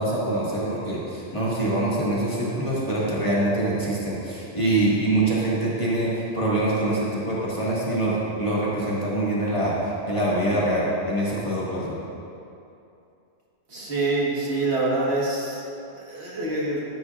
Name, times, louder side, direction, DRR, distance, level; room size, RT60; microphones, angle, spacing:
voice 1, 0.0-9.7 10.1-12.0, right 1 dB, 30° left, -8 dB, 2.0 m, -24 dB
voice 2, 13.7-15.6 15.9-16.8, right 2 dB, 75° right, -5 dB, 1.9 m, -25 dB
12.5 x 9.5 x 2.5 m, 2.7 s
omnidirectional pair, 1.1 m